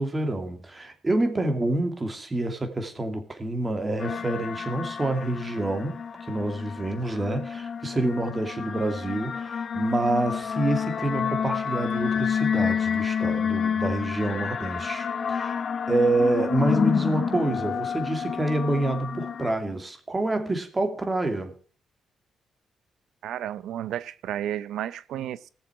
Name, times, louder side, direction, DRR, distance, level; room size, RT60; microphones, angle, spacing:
voice 1, 0.0-15.6 15.9-21.6, right 2 dB, 25° right, 2.6 m, -27 dB
sound 1, 4.0-19.5, left 7 dB, 55° left, 0.8 m, -29 dB
voice 2, 23.2-25.5, right 11 dB, 90° right, 0.7 m, -32 dB
19.0 x 7.2 x 4.8 m
cardioid pair, 75°, 0 cm